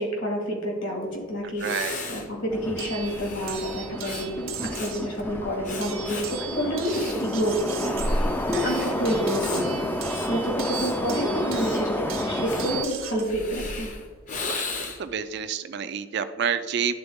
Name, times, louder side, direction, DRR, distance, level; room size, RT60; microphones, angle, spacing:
voice 1, 0.0-9.9 10.3-13.9, equal, 70° left, 0 dB, 2.1 m, -29 dB
Breathing, 1.1-1.2 1.5-15.2, left 2 dB, 40° left, 0.7 m, -35 dB
voice 2, 1.6-2.1 8.5-8.7 14.5-14.6 15.0-17.0, right 7 dB, 55° right, 10 dB, 0.4 m, -29 dB
Subway metro underground, 2.5-12.8, left 1 dB, 10° left, 0.4 m, -31 dB
sound 1, 2.8-5.2 5.8-13.3 14.4-14.9, right 9 dB, 85° right, 1.1 m, -38 dB
11.0 x 3.9 x 3.5 m, 1.5 s
head